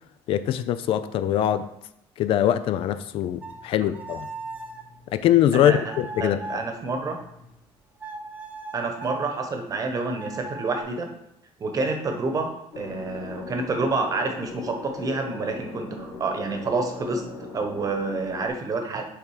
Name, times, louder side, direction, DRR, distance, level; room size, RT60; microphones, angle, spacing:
voice 1, 0.3-1.7 2.2-4.3 5.1-6.6, left 11 dB, 60° left, 0.4 m, -23 dB
sound 1, 3.2-7.7 8.0-9.2 10.1-10.8, right 2 dB, 15° right, 0.8 m, -40 dB
voice 2, 5.5-7.2 8.7-11.1 11.6-12.5 12.8-17.3 17.5-19.1, right 3 dB, 35° right, 1.0 m, -28 dB
sound 2, 12.7-18.5, left 4 dB, 85° left, 2.1 m, -39 dB
6.9 x 3.7 x 4.8 m
cardioid pair, 130°, 11 cm